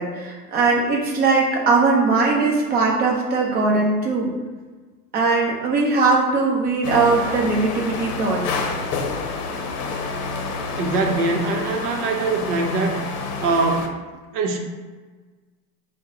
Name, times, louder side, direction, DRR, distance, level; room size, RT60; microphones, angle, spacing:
voice 1, 0.0-4.3 5.1-8.4, right 3 dB, 20° right, -3 dB, 0.7 m, -20 dB
sound 1, 6.8-13.9, left 4 dB, 70° left, 0.7 m, -28 dB
voice 2, 10.8-12.9 13.4-13.9 14.3-14.6, right 3 dB, 75° right, 3 dB, 0.8 m, -22 dB
4.0 x 2.2 x 3.8 m, 1.4 s
supercardioid pair, 125°, 46 cm